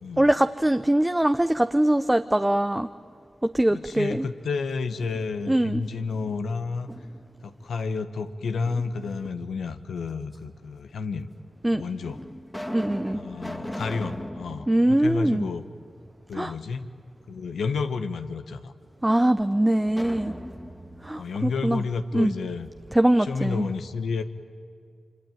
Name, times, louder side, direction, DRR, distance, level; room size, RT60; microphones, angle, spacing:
voice 1, 0.2-2.9 3.4-4.3 5.5-5.8 11.6-11.8 12.7-13.2 14.7-15.5 16.3-16.5 19.0-20.3 21.0-21.8 22.1-22.3 22.9-23.7, right 1 dB, 15° right, 9 dB, 0.8 m, -22 dB
voice 2, 3.7-6.9 7.4-11.3 11.7-12.2 13.1-15.6 16.3-16.9 17.3-18.7 21.1-22.7 23.2-24.2, left 4 dB, 85° left, 9 dB, 1.2 m, -31 dB
sound 1, 4.7-5.7 6.1-7.4 8.6-9.4 10.3-10.4 11.3-11.4 12.0-16.1 16.4-16.5 19.8-22.6, left 1 dB, 15° left, 2.4 m, -39 dB
25.5 x 25.0 x 9.4 m, 2.3 s
supercardioid pair, 40°, 0 cm